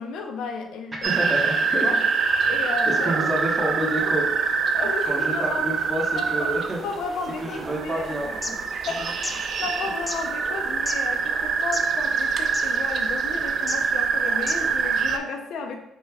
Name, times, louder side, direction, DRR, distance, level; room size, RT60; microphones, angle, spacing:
voice 1, 0.0-1.3 1.8-2.0 2.4-3.2 4.7-5.7 6.1-6.5 6.8-8.1 8.9-15.8, left 4 dB, 80° left, 3 dB, 0.5 m, -33 dB
voice 2, 0.9-1.9 2.9-4.5 5.1-6.8 7.4-8.5 9.0-9.1, right 1 dB, 25° right, -2 dB, 1.1 m, -29 dB
sound 1, 1.0-15.2, right 5 dB, 60° right, 0.3 m, -25 dB
sound 2, 8.2-8.5 9.1-9.4 10.1-10.2 10.9-11.0 11.6-12.0 12.2-12.3 12.5-12.7 13.6-13.8 14.4-14.7, left 2 dB, 20° left, 0.3 m, -31 dB
4.1 x 2.2 x 3.4 m, 0.83 s
cardioid pair, 90°, 0 cm